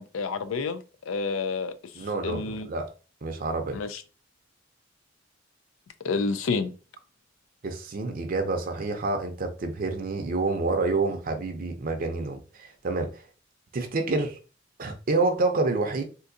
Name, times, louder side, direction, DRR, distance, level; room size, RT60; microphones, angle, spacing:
voice 1, 0.0-2.7 3.7-4.0 6.0-6.7, left 4 dB, 85° left, 0.4 m, -30 dB
voice 2, 2.0-2.9 3.2-3.8 7.6-13.2 13.7-14.4 14.8-16.0, right 3 dB, 45° right, 0.5 m, -28 dB
3.7 x 2.5 x 2.6 m
head